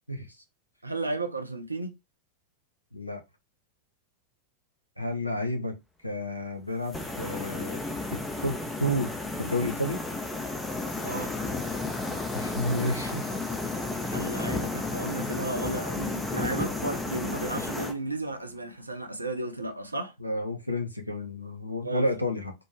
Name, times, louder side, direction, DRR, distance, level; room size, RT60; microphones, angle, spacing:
voice 1, 0.8-1.9 11.0-11.3 14.0-20.1 21.8-22.1, right 2 dB, 85° right, 0.6 m, -34 dB
voice 2, 5.0-10.0 12.3-13.3 20.2-22.5, left 1 dB, 90° left, 0.7 m, -31 dB
sound 1, 6.9-17.9, left 2 dB, 10° left, 0.5 m, -32 dB
4.3 x 2.0 x 3.2 m
figure-of-eight pair, 90°, 0 cm